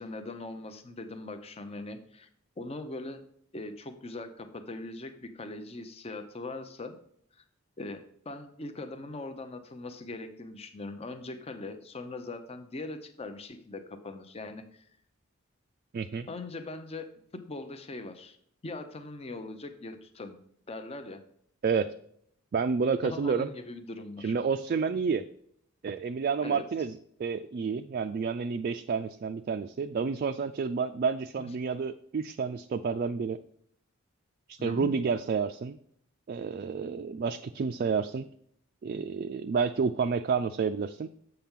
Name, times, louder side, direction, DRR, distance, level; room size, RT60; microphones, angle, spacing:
voice 1, 0.0-2.3 2.6-3.3 3.5-7.0 7.3-7.4 7.8-14.8 16.3-17.1 17.3-18.4 18.6-20.4 20.7-21.2 23.0-24.4 26.4-26.7 31.4-31.5 34.6-34.9, left 2 dB, 30° left, 8 dB, 0.6 m, -41 dB
voice 2, 15.9-16.3 21.6-21.9 22.5-23.5 24.2-25.2 25.8-33.4 34.5-35.8 36.3-38.3 38.8-41.1, right 5 dB, 45° right, 7 dB, 0.3 m, -30 dB
7.8 x 5.8 x 3.6 m, 0.65 s
head